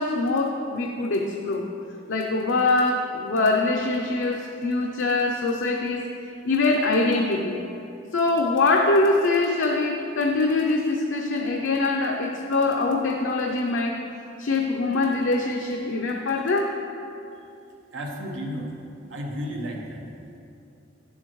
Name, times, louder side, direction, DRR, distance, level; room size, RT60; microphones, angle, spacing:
voice 1, 0.0-1.7 2.1-6.1 6.4-7.6 8.1-14.0 14.4-16.8, left 3 dB, 75° left, 1 dB, 0.5 m, -23 dB
voice 2, 17.9-18.7 19.1-20.0, equal, 90° right, 1 dB, 1.0 m, -32 dB
9.6 x 7.2 x 3.0 m, 2.7 s
head